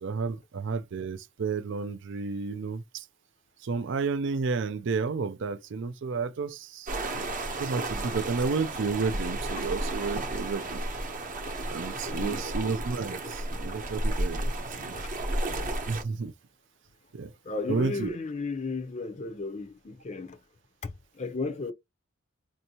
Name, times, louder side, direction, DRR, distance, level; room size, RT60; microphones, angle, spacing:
voice 1, 0.0-3.1 3.6-6.9 7.6-10.8 11.7-15.0 15.9-16.3 17.1-17.3 17.7-18.2, right 4 dB, 60° right, 0.4 m, -31 dB
sound 1, 6.9-16.0, right 1 dB, 40° right, 0.8 m, -33 dB
voice 2, 12.0-12.4 15.0-15.1 17.5-20.4 20.8-20.9 21.2-21.7, left 3 dB, 35° left, 0.5 m, -34 dB
4.3 x 2.6 x 2.8 m
head